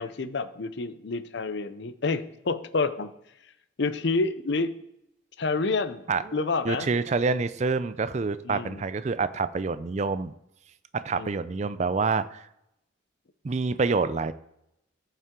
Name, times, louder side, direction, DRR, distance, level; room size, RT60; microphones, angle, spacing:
voice 1, 0.0-3.1 3.8-4.7 5.4-6.0 6.3-6.9 8.5-8.8 11.2-11.4, left 3 dB, 60° left, 13 dB, 0.6 m, -28 dB
voice 2, 6.1-6.4 6.6-10.3 10.9-12.5 13.4-14.3, right 4 dB, 35° right, 14 dB, 0.4 m, -27 dB
14.0 x 5.6 x 3.7 m, 0.81 s
head